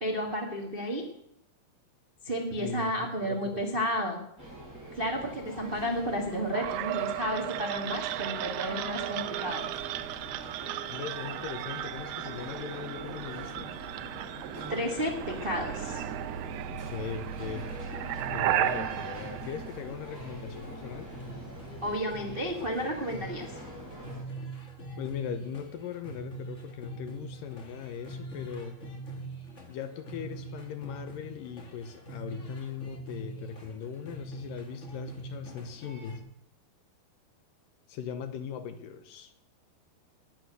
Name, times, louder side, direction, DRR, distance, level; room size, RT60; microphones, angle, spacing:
voice 1, 0.0-1.0 2.2-4.2 4.9-9.6 14.7-16.0 21.8-23.5, equal, 40° right, 1 dB, 0.7 m, -32 dB
voice 2, 2.6-3.9 10.9-13.7 16.7-17.6 18.3-21.1 25.0-28.7 29.7-36.2 37.9-39.3, left 7 dB, 75° left, 9 dB, 2.3 m, -39 dB
sound 1, 4.4-24.2, right 1 dB, 5° right, 6.6 m, -45 dB
sound 2, 6.5-20.4, right 12 dB, 85° right, 2.8 m, -35 dB
sound 3, 17.3-36.2, right 2 dB, 45° left, 0.9 m, -44 dB
19.5 x 9.0 x 6.4 m, 0.73 s
omnidirectional pair, 4.5 m